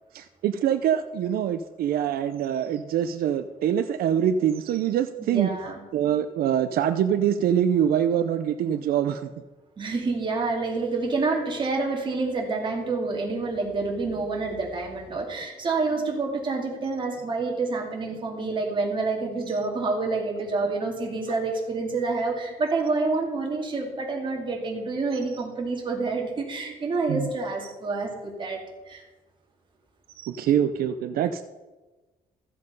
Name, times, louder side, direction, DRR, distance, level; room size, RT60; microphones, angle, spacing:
voice 1, 0.1-5.5 5.9-9.3 27.1-27.3 30.2-31.4, right 9 dB, 80° right, 10 dB, 0.6 m, -24 dB
voice 2, 5.2-5.8 9.8-28.6 28.9-29.0, right 3 dB, 30° right, 1 dB, 2.3 m, -28 dB
14.0 x 7.7 x 5.4 m, 1.2 s
cardioid pair, 165°, 15 cm